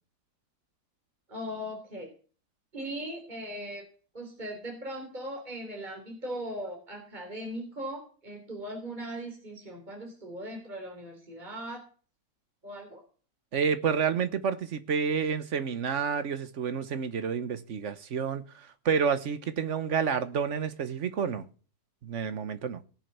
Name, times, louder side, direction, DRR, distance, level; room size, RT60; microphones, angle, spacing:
voice 1, 1.3-2.1 2.7-3.8 4.1-11.8 12.6-13.0, equal, 30° right, 3.6 m, -39 dB
voice 2, 13.5-21.5 22.0-22.8, right 6 dB, 55° right, 1.3 m, -29 dB
18.0 x 7.4 x 6.7 m
omnidirectional pair, 1.6 m